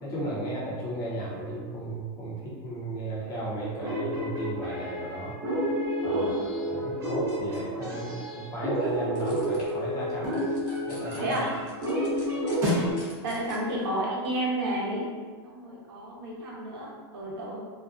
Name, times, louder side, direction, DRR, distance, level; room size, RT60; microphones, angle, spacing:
voice 1, 0.0-5.3 6.0-10.4 10.9-11.4, right 1 dB, 25° left, -6 dB, 0.6 m, -35 dB
sound 1, 3.7-12.9, equal, 20° right, 0.5 m, -30 dB
sound 2, 8.8-13.8, left 1 dB, 55° left, 0.9 m, -50 dB
voice 2, 13.2-15.0 15.4-17.6, right 1 dB, 65° right, -4 dB, 0.7 m, -31 dB
2.4 x 2.1 x 2.4 m, 1.5 s
supercardioid pair, 160°, 14 cm